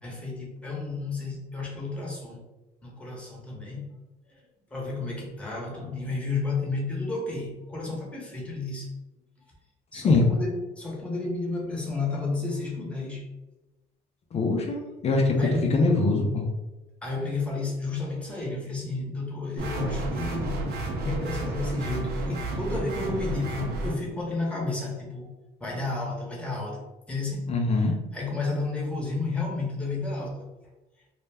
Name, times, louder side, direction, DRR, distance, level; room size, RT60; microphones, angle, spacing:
voice 1, 0.0-2.4 2.8-3.9 4.3-4.4 4.7-8.9 9.9-13.2 15.4-15.7 17.0-20.7 21.0-25.3 25.6-27.9 28.1-30.4, left 3 dB, 5° left, -3 dB, 0.8 m, -32 dB
voice 2, 9.9-10.2 14.3-16.5 27.5-27.9, left 3 dB, 40° left, 2 dB, 0.4 m, -23 dB
sound 1, 19.6-24.0, right 2 dB, 70° right, 0.5 m, -31 dB
2.2 x 2.1 x 3.3 m, 1.1 s
cardioid pair, 110°, 17 cm